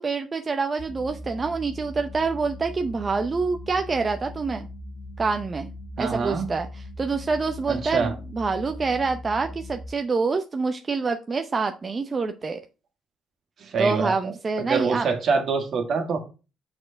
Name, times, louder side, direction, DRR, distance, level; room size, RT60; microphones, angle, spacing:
voice 1, 0.0-4.7 5.2-5.7 6.0-12.6 13.8-15.1, right 4 dB, 35° right, 0.6 m, -26 dB
sound 1, 0.8-9.9, left 1 dB, 55° left, 1.6 m, -40 dB
voice 2, 6.0-6.5 7.7-8.1 13.6-14.3 14.6-16.2, right 4 dB, 60° right, 1.8 m, -25 dB
6.4 x 4.4 x 5.7 m
cardioid pair, 90°, 0 cm